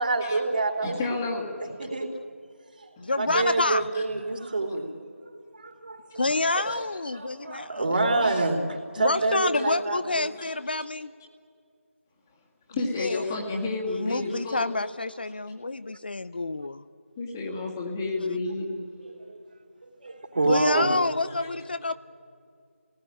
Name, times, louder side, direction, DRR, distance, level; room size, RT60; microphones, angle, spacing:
voice 1, 0.0-1.0 1.9-2.1 2.8-2.9 3.2-4.9 5.5-6.2 6.5-6.6 7.1-10.3 19.3-19.4 20.0-20.9, right 2 dB, 40° right, 3 dB, 3.3 m, -27 dB
voice 2, 0.8-1.9 3.0-3.1 3.9-4.0 6.6-6.8 8.2-8.5 9.6-9.7 10.4-10.8 12.7-14.7 17.2-18.9, left 3 dB, 15° left, -1 dB, 2.0 m, -32 dB
voice 3, 3.0-3.8 6.1-7.9 9.0-11.1 12.8-13.3 13.9-16.8 20.5-21.9, left 2 dB, 45° left, 13 dB, 0.6 m, -28 dB
28.5 x 19.5 x 9.9 m, 2.3 s
figure-of-eight pair, 170°, 7 cm